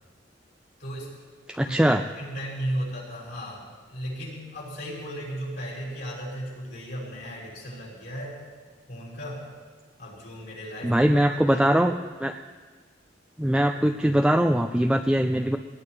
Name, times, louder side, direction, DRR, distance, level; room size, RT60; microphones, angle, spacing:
voice 1, 0.8-1.1 1.6-8.4 8.9-9.5 10.0-11.8, equal, 65° left, -5 dB, 6.2 m, -35 dB
voice 2, 1.5-2.0 10.8-11.9 12.2-12.3 13.4-15.6, right 1 dB, 5° right, 4 dB, 0.4 m, -21 dB
19.5 x 19.5 x 3.3 m, 1.5 s
head